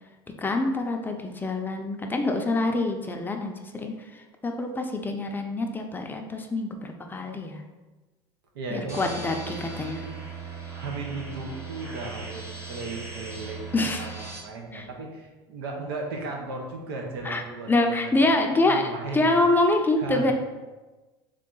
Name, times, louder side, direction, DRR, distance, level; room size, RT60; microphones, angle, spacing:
voice 1, 0.4-7.6 8.7-10.1 13.7-14.1 14.7-14.8 17.2-17.4 17.7-18.8 19.1-20.3, left 2 dB, 15° left, 3 dB, 0.5 m, -26 dB
voice 2, 8.5-9.2 10.7-19.3 20.0-20.3, right 3 dB, 90° right, 1 dB, 0.9 m, -36 dB
sound 1, 8.9-14.4, right 5 dB, 25° right, 1.1 m, -38 dB
3.7 x 3.3 x 3.8 m, 1.2 s
supercardioid pair, 100°, 12 cm